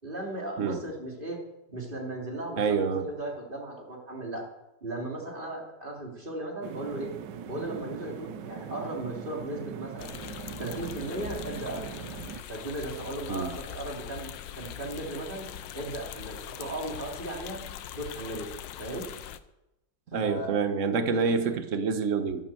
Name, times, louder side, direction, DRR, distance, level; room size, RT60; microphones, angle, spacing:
voice 1, 0.0-1.4 1.7-4.5 4.8-7.1 7.4-10.1 10.6-11.9 12.5-17.6 17.9-18.5 18.8-19.1 20.1-20.5 21.1-21.5, right 1 dB, 25° right, -1 dB, 3.4 m, -36 dB
voice 2, 2.6-3.1 13.3-13.5 20.1-22.4, right 5 dB, 45° right, 9 dB, 1.4 m, -27 dB
sound 1, 6.6-12.4, right 8 dB, 70° right, 1.4 m, -41 dB
sound 2, 10.0-19.4, left 10 dB, 80° left, 1.4 m, -41 dB
12.0 x 11.5 x 7.7 m, 0.92 s
omnidirectional pair, 2.0 m